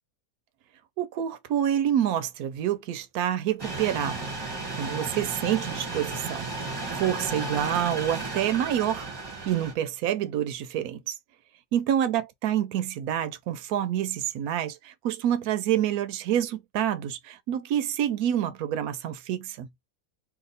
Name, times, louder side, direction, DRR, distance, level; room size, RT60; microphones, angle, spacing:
voice 1, 1.0-6.5 6.9-9.1 9.5-11.2 11.7-19.7, right 10 dB, 85° right, 1.1 m, -27 dB
sound 1, 3.6-9.7, right 3 dB, 20° right, 0.8 m, -34 dB
2.8 x 2.4 x 3.9 m
omnidirectional pair, 1.5 m